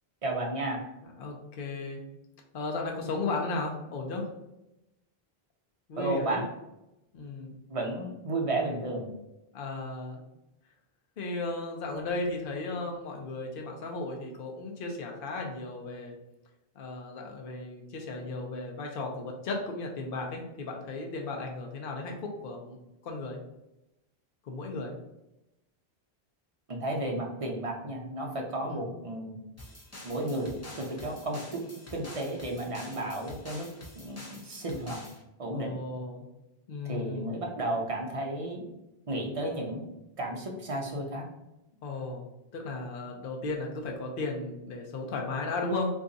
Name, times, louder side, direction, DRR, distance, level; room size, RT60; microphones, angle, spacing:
voice 1, 0.2-0.9 6.0-6.5 7.7-9.1 26.7-29.4 30.0-31.6 31.9-33.7 34.0-35.0 35.4-35.8 36.8-38.7 39.1-39.9 40.2-41.3, right 1 dB, 40° right, 0 dB, 0.5 m, -33 dB
voice 2, 1.0-2.0 2.5-4.2 5.9-6.4 7.1-7.5 9.5-10.2 11.2-16.1 16.8-22.8 23.0-23.4 24.4-24.9 28.7-28.8 35.5-36.3 36.7-37.3 41.8-42.2 42.5-45.9, left 3 dB, 65° left, 1 dB, 0.8 m, -35 dB
sound 1, 29.6-35.2, left 1 dB, 20° left, 0.5 m, -47 dB
2.5 x 2.3 x 3.8 m, 0.91 s
omnidirectional pair, 1.1 m